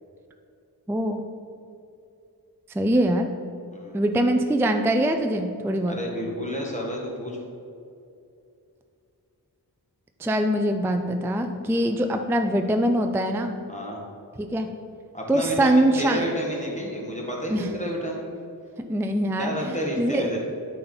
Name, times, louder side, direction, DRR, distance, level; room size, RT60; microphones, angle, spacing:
voice 1, 0.9-1.2 2.7-3.3 3.9-6.0 10.2-13.5 14.4-14.7 15.3-16.2 17.5-17.7 18.9-19.5 20.0-20.3, right 1 dB, 5° right, 5 dB, 0.4 m, -23 dB
voice 2, 3.7-4.0 5.9-7.4 11.7-11.9 13.7-14.0 15.1-18.3 19.4-20.4, equal, 20° left, -3 dB, 1.6 m, -30 dB
8.9 x 4.4 x 3.9 m, 2.5 s
wide cardioid pair, 50°, 40 cm